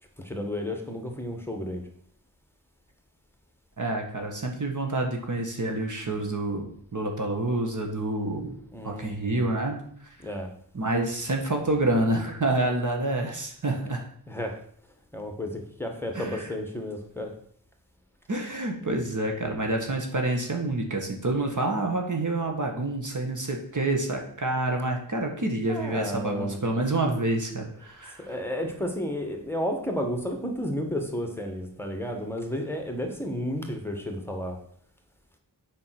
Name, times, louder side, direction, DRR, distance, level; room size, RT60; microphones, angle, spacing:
voice 1, 0.2-1.9 8.7-9.5 10.2-10.5 14.3-14.6 15.1-17.3 25.7-26.6 27.8-27.9 28.2-34.6, equal, 5° left, 3 dB, 1.6 m, -32 dB
voice 2, 3.8-8.6 8.8-9.8 10.7-14.0 16.1-16.5 18.3-28.3, right 2 dB, 50° right, 3 dB, 1.7 m, -28 dB
7.5 x 5.6 x 6.0 m, 0.63 s
wide cardioid pair, 65°, 39 cm